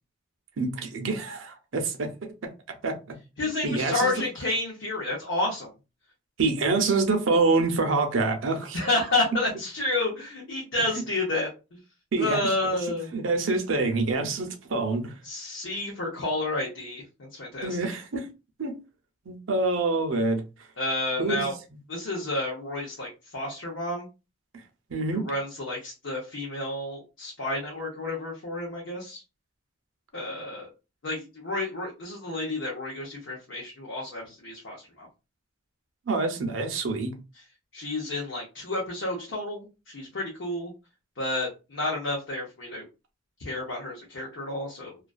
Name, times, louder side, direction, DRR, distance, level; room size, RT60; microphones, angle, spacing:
voice 1, 0.6-2.5 2.8-3.0 3.6-4.1 6.4-8.8 11.0-11.1 12.1-12.4 13.1-15.1 17.6-18.3 18.6-18.8 19.3-20.4 21.2-21.5 24.9-25.3 36.1-37.1, right 3 dB, 75° right, 0.6 m, -26 dB
voice 2, 3.4-5.7 8.7-11.8 12.2-13.1 15.2-17.9 20.8-21.6 21.9-24.1 25.1-29.2 30.1-30.7 31.0-35.1 37.4-37.5 37.7-40.7 41.2-42.8 43.4-45.0, left 2 dB, 70° left, 0.7 m, -30 dB
2.4 x 2.3 x 2.3 m
head